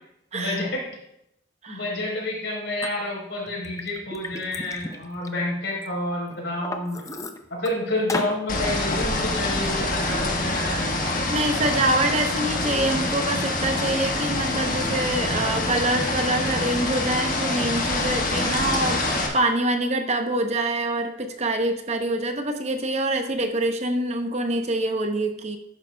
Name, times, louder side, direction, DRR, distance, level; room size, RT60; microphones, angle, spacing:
voice 1, 0.3-0.9 1.7-7.0 7.5-11.0, left 1 dB, 90° left, -2 dB, 3.7 m, -29 dB
Liquid, 2.8-2.9 3.5-5.9 6.3-7.7 8.1-8.4, left 2 dB, 15° left, 0.5 m, -34 dB
sound 1, 8.5-19.3, left 2 dB, 45° left, 1.4 m, -26 dB
voice 2, 11.3-25.6, right 1 dB, 35° right, 6 dB, 0.7 m, -25 dB
11.5 x 8.9 x 2.2 m, 0.80 s
head